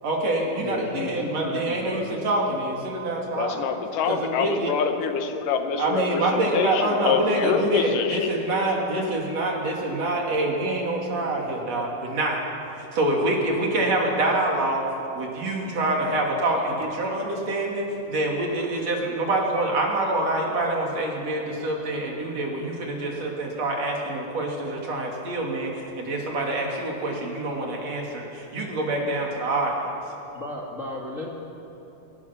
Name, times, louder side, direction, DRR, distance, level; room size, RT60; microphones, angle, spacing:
voice 1, 0.0-3.7 4.1-4.7 5.8-12.4 12.8-14.8 15.2-29.7, right 1 dB, 50° right, -1 dB, 3.6 m, -26 dB
voice 2, 0.6-2.2 30.3-31.3, left 2 dB, 30° left, -2 dB, 1.5 m, -34 dB
voice 3, 3.4-8.3, left 6 dB, 75° left, 7 dB, 2.6 m, -26 dB
23.5 x 19.0 x 5.9 m, 2.9 s
omnidirectional pair, 3.9 m